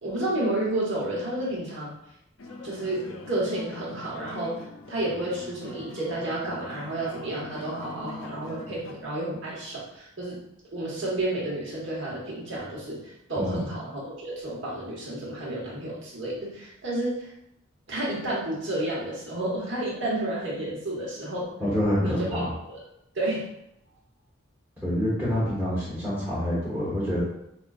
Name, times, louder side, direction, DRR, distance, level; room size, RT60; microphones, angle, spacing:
voice 1, 0.0-1.9 2.6-10.4 10.7-17.3 17.9-21.4 22.0-22.8 23.1-23.4, right 1 dB, 65° right, -5 dB, 1.4 m, -31 dB
sound 1, 2.4-8.9, left 3 dB, 70° left, 0.5 m, -42 dB
voice 2, 21.6-22.5 24.8-27.2, equal, 10° right, -10 dB, 1.0 m, -27 dB
5.4 x 2.4 x 2.4 m, 0.83 s
head